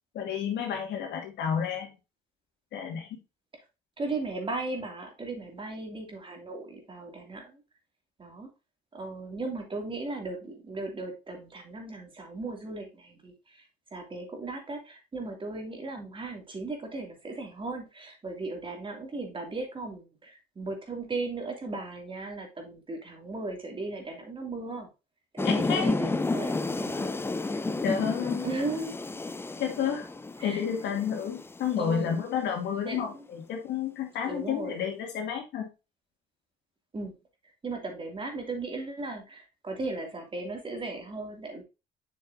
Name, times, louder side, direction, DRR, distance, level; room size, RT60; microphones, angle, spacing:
voice 1, 0.1-1.9 2.7-3.2 25.4-25.9 27.8-28.5 29.6-30.1 30.4-35.7, left 8 dB, 75° left, 2 dB, 2.3 m, -30 dB
voice 2, 4.0-7.6 8.2-8.5 8.9-24.9 25.3-27.1 28.4-28.9 30.4-30.7 31.8-32.2 32.8-33.3 34.2-34.8 36.9-37.1 37.6-41.6, right 3 dB, 30° right, 2 dB, 2.7 m, -37 dB
sound 1, 25.4-32.3, left 3 dB, 15° left, 0.5 m, -31 dB
7.4 x 6.3 x 2.7 m, 0.27 s
cardioid pair, 100°, 18 cm